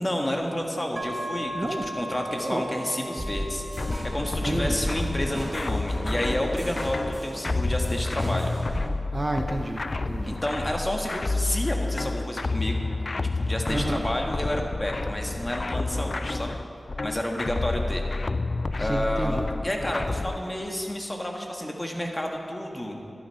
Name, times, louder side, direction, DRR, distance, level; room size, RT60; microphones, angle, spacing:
voice 1, 0.0-3.7 4.1-8.5 10.3-12.8 13.2-16.6 17.0-18.0 18.8-23.0, left 1 dB, 25° left, 1 dB, 1.6 m, -30 dB
sound 1, 1.0-14.6, right 1 dB, 65° right, 1.7 m, -41 dB
sound 2, 3.2-8.9, equal, 15° right, 2.1 m, -34 dB
sound 3, 3.8-20.4, left 3 dB, 55° left, 0.4 m, -30 dB
voice 2, 4.4-4.8 9.1-10.3 13.7-14.0 18.8-19.4, right 1 dB, 40° right, 4 dB, 1.0 m, -30 dB
12.0 x 9.9 x 5.8 m, 2.6 s
cardioid pair, 45°, 0 cm